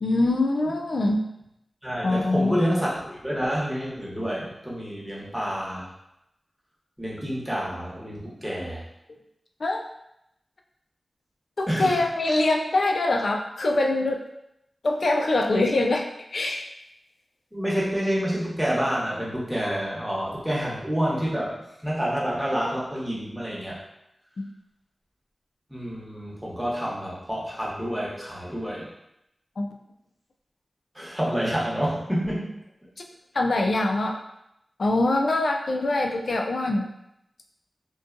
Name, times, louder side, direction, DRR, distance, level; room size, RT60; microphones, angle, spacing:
voice 1, 0.0-1.2 2.0-2.5 9.6-9.8 11.6-14.2 14.8-16.0 16.3-16.6 24.4-24.5 29.6-29.8 33.4-34.2 34.8-36.9, left 2 dB, 75° left, 2 dB, 0.3 m, -23 dB
voice 2, 1.8-5.9 7.0-8.8 11.7-12.0 12.3-12.4 17.5-21.5 21.8-23.8 25.7-28.9 30.9-32.6, equal, 10° right, -6 dB, 1.0 m, -28 dB
2.6 x 2.2 x 2.5 m, 0.81 s
cardioid pair, 40°, 0 cm